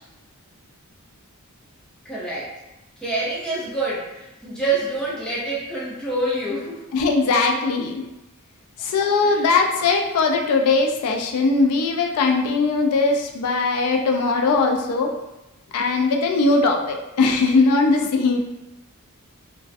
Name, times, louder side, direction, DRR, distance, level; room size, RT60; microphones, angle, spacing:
voice 1, 2.0-2.5 3.0-6.9 9.2-9.5, right 2 dB, 5° left, -8 dB, 0.7 m, -27 dB
voice 2, 6.9-8.0 8.8-15.1 15.7-18.4, left 3 dB, 90° left, 2 dB, 0.4 m, -20 dB
2.4 x 2.1 x 2.5 m, 0.98 s
head